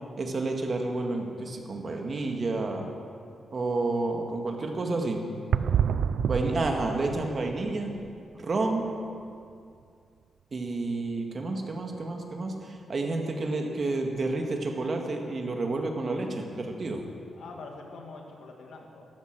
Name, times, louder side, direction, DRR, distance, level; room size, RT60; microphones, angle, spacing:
voice 1, 0.2-2.9 3.5-5.2 6.3-7.9 8.4-8.8 10.5-17.0, right 2 dB, 35° right, 2 dB, 1.8 m, -30 dB
sound 1, 5.5-8.5 8.8-8.9 9.5-9.6 14.2-14.3, right 7 dB, 70° right, 0.5 m, -29 dB
voice 2, 17.3-19.1, left 3 dB, 75° left, 1 dB, 2.2 m, -45 dB
13.0 x 12.5 x 7.5 m, 2.4 s
wide cardioid pair, 145°, 0 cm